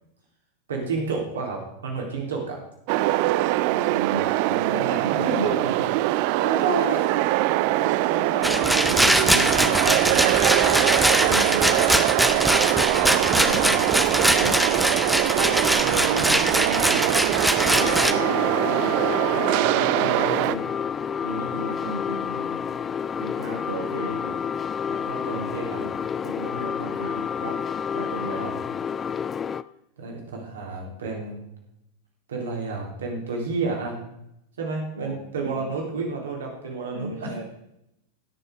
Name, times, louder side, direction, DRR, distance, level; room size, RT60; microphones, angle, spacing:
voice 1, 0.7-2.6 4.7-5.5 6.4-7.0 7.7-8.7 9.2-10.2 13.4-14.0 15.3-15.7 24.9-25.8 28.4-28.5 30.0-31.4 32.3-34.0 34.6-37.4, right 4 dB, 65° right, 0 dB, 3.6 m, -31 dB
sound 1, 2.9-20.5, right 16 dB, 45° right, 0.4 m, -23 dB
voice 2, 3.7-6.8 8.8-10.4 10.8-12.1 13.0-13.9 14.3-14.8 15.7-17.2 17.6-22.8 23.2-24.4 24.9-25.1 25.3-25.5 25.8-26.0 26.2-27.6 27.9-28.5 35.0-36.1 36.9-37.4, right 1 dB, 80° right, -2 dB, 1.7 m, -36 dB
Rattle, 8.4-18.1, equal, ahead, 0.8 m, -22 dB
sound 2, 17.7-29.6, left 7 dB, 20° left, 0.4 m, -29 dB
16.5 x 6.8 x 4.9 m, 0.83 s
figure-of-eight pair, 90°, 0 cm